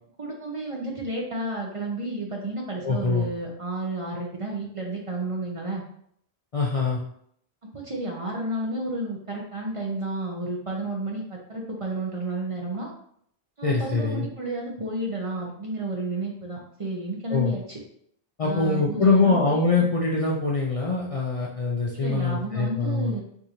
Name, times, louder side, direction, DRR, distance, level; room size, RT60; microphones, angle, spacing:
voice 1, 0.2-5.8 7.7-12.9 13.6-17.8 18.4-19.4 19.7-19.8 21.9-23.2, right 2 dB, 40° right, -2 dB, 0.6 m, -31 dB
voice 2, 2.8-3.3 6.5-7.0 13.6-14.3 17.3-17.5 18.4-23.2, left 3 dB, 45° left, -3 dB, 0.5 m, -23 dB
4.7 x 2.5 x 2.8 m, 0.67 s
omnidirectional pair, 1.1 m